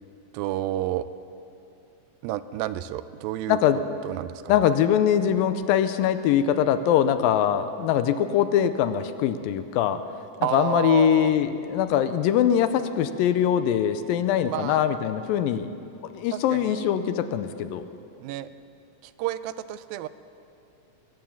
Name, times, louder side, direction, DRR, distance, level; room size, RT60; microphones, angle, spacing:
voice 1, 0.3-1.1 2.2-3.6 4.0-4.5 10.4-11.4 14.4-14.9 16.3-16.9 18.2-18.5 19.0-20.1, right 13 dB, 85° right, 14 dB, 2.3 m, -30 dB
voice 2, 3.5-3.8 4.5-10.0 10.5-15.7 16.1-17.8, left 9 dB, 85° left, 11 dB, 2.3 m, -22 dB
21.5 x 9.4 x 7.2 m, 2.6 s
omnidirectional pair, 4.1 m